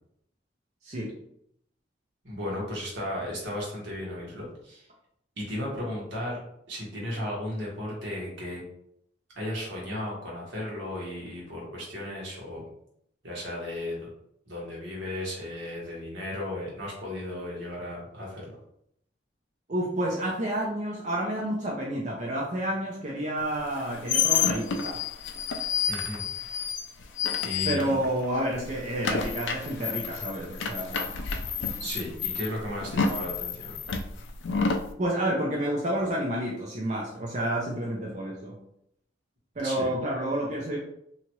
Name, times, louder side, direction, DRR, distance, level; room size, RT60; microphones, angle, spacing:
voice 1, 2.2-4.9 5.4-6.4 6.7-8.6 9.3-12.6 13.2-14.1 14.5-18.6 25.9-26.2 27.4-28.0 31.8-33.8 39.6-39.9, left 1 dB, 80° right, -3 dB, 1.3 m, -35 dB
voice 2, 19.7-25.0 27.6-31.1 35.0-38.6 39.6-40.8, right 1 dB, 40° right, -3 dB, 0.5 m, -29 dB
sound 1, 23.6-28.2 28.5-34.9, left 6 dB, 85° left, 0.4 m, -29 dB
2.9 x 2.4 x 3.0 m, 0.73 s
head